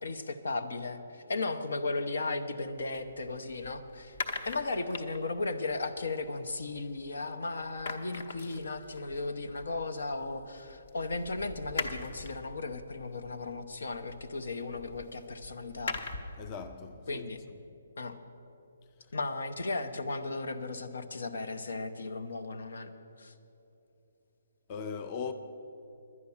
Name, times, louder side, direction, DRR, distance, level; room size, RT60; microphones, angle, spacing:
voice 1, 0.0-4.2 4.4-16.0 17.1-17.4 18.0-18.1 19.1-22.9 23.2-23.3, left 3 dB, 80° left, 0.9 m, -36 dB
sound 1, 2.7-7.3 7.6-16.5, left 3 dB, 45° left, 0.9 m, -43 dB
voice 2, 16.4-17.2 24.7-25.3, left 5 dB, 25° left, 0.4 m, -38 dB
11.0 x 9.5 x 7.1 m
hypercardioid pair, 170°, 0 cm